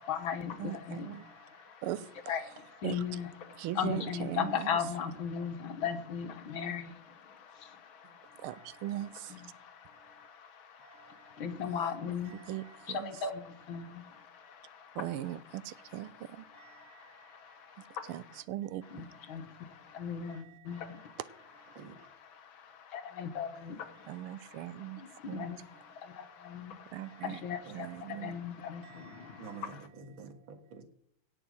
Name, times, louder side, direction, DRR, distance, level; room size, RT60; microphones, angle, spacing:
voice 1, 0.0-1.8 2.3-8.7 9.3-12.5 12.9-15.0 16.1-18.4 18.9-21.2 21.7-29.9, left 7 dB, 70° left, 2.0 m, -39 dB
voice 2, 0.6-1.3 1.8-2.3 2.8-3.0 3.6-4.8 8.4-9.3 12.3-13.1 14.9-16.4 18.1-18.8 21.2-21.3 24.1-25.0 25.3-25.5 26.9-27.4 27.7-28.3, right 13 dB, 90° right, 1.6 m, -39 dB
voice 3, 1.1-1.6 8.5-8.7 10.8-11.3 12.3-12.7 16.5-17.4 20.3-20.9 21.8-21.9 27.0-27.2 27.7-28.3 28.8-30.8, right 6 dB, 65° right, 2.4 m, -52 dB
17.5 x 6.0 x 6.3 m
omnidirectional pair, 2.3 m